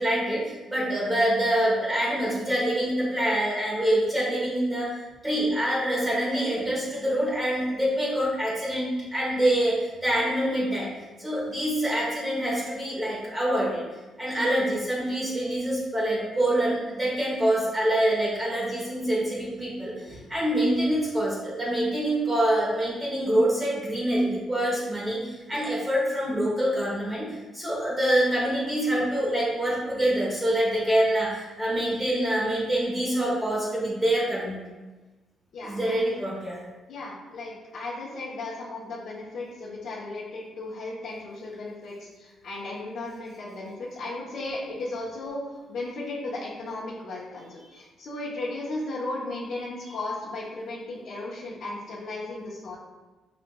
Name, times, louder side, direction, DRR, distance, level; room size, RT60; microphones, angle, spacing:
voice 1, 0.0-5.0 5.2-10.9 11.2-13.8 14.2-34.6 35.6-36.6, right 1 dB, 15° right, -6 dB, 1.0 m, -25 dB
voice 2, 35.5-36.2 36.9-52.8, left 2 dB, 60° left, -8 dB, 0.8 m, -35 dB
5.8 x 2.4 x 2.3 m, 1.2 s
cardioid pair, 90°, 0 cm